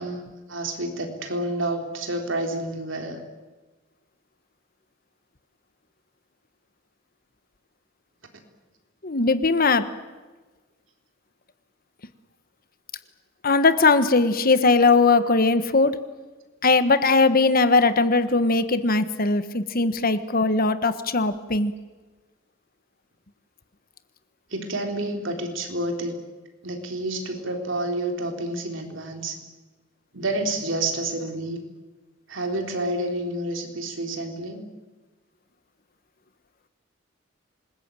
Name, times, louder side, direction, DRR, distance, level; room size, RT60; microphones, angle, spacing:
voice 1, 0.0-3.2 24.5-26.2 26.6-29.4 30.1-31.6 32.3-34.7, right 1 dB, 70° right, 4 dB, 3.7 m, -29 dB
voice 2, 9.0-9.9 13.4-16.0 16.6-21.7, left 3 dB, 50° left, 11 dB, 1.4 m, -20 dB
27.0 x 20.5 x 9.0 m, 1.3 s
head